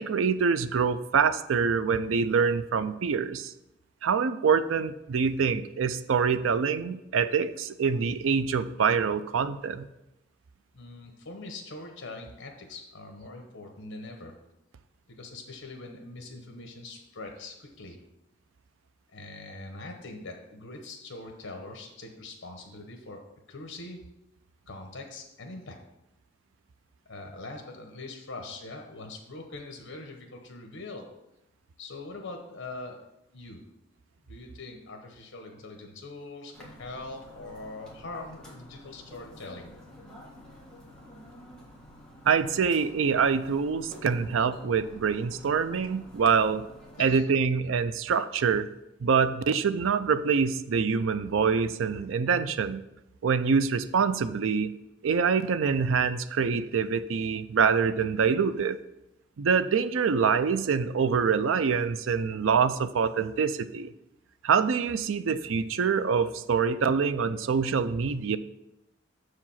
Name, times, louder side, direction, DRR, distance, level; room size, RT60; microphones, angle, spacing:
voice 1, 0.0-3.5 4.0-9.9 42.3-46.6 47.0-48.7 49.0-52.8 53.2-54.7 55.0-58.8 59.4-63.9 64.4-68.4, right 6 dB, 85° right, 13 dB, 0.4 m, -25 dB
voice 2, 10.7-14.3 15.2-18.0 19.1-23.2 23.5-24.0 24.7-25.8 27.0-31.0 31.8-33.1 33.3-33.6 34.3-39.7 47.0-47.3, left 2 dB, 80° left, 3 dB, 1.0 m, -42 dB
sound 1, 36.5-47.0, equal, 5° left, 1.6 m, -50 dB
6.6 x 4.9 x 5.7 m, 0.90 s
head